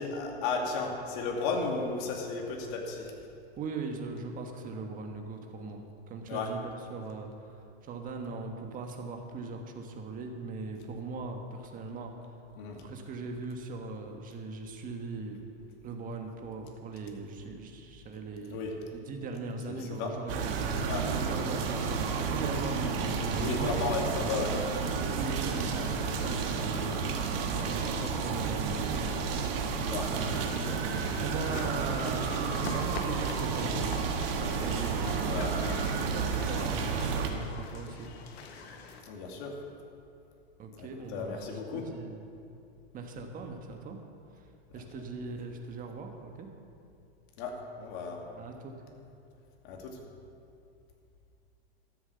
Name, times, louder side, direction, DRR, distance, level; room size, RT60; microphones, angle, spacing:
voice 1, 0.0-3.1 6.3-6.5 12.6-12.8 18.5-18.7 19.7-20.1 20.9-21.1 23.4-24.5 26.8-27.0 29.9-30.1 35.2-35.6 39.1-39.5 40.8-41.9 47.4-48.2 49.6-50.0, left 4 dB, 55° left, 1 dB, 2.4 m, -34 dB
voice 2, 3.6-7.3 7.8-12.1 12.8-15.5 15.8-18.6 18.9-20.5 21.1-23.7 25.0-27.1 27.4-29.3 31.2-33.9 34.5-35.7 35.9-38.1 40.6-42.3 42.9-44.0 44.7-46.5 48.3-48.7, right 3 dB, 25° right, 3 dB, 1.4 m, -39 dB
sound 1, 20.3-37.3, right 5 dB, 65° right, 1.6 m, -31 dB
sound 2, 30.0-39.0, left 4 dB, 80° left, 1.6 m, -44 dB
13.0 x 7.8 x 6.8 m, 2.5 s
supercardioid pair, 140°, 31 cm